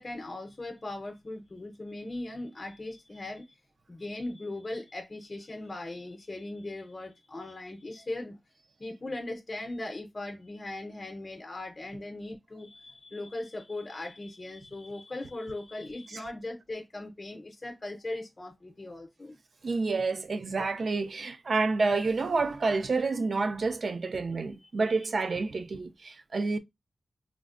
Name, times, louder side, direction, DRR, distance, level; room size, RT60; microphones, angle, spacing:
voice 1, 0.0-3.6 3.9-8.4 8.8-19.4 24.6-25.0 26.3-26.4, left 2 dB, 40° left, 0.6 m, -39 dB
voice 2, 19.6-26.6, right 3 dB, 65° right, 0.3 m, -29 dB
3.5 x 2.0 x 2.4 m
wide cardioid pair, 65°, 0 cm